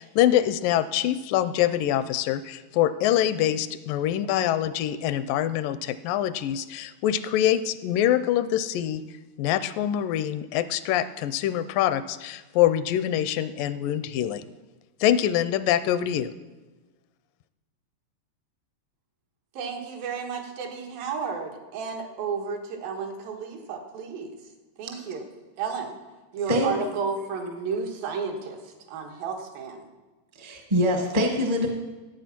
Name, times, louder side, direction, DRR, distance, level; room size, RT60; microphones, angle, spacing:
voice 1, 0.0-9.0 9.4-14.4 15.0-16.3, left 11 dB, 85° left, 14 dB, 2.2 m, -24 dB
voice 2, 19.5-24.3 24.8-25.2 25.6-26.0 26.3-29.9, right 5 dB, 90° right, 2 dB, 3.4 m, -32 dB
voice 3, 30.4-31.7, equal, 40° right, 2 dB, 0.5 m, -24 dB
14.0 x 8.6 x 5.9 m, 1.2 s
omnidirectional pair, 4.0 m